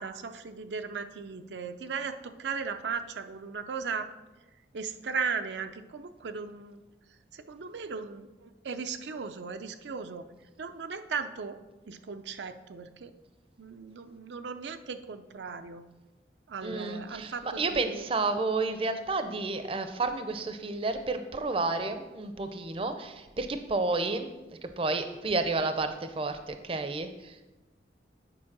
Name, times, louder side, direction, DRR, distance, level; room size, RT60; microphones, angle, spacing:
voice 1, 0.0-4.1 4.7-6.8 7.3-10.3 10.6-11.6 11.9-13.1 13.6-15.8 16.5-18.1, right 5 dB, 80° right, 8 dB, 0.5 m, -37 dB
voice 2, 16.6-24.3 24.6-27.4, right 3 dB, 30° right, 8 dB, 0.5 m, -31 dB
8.9 x 4.5 x 5.9 m, 1.1 s
head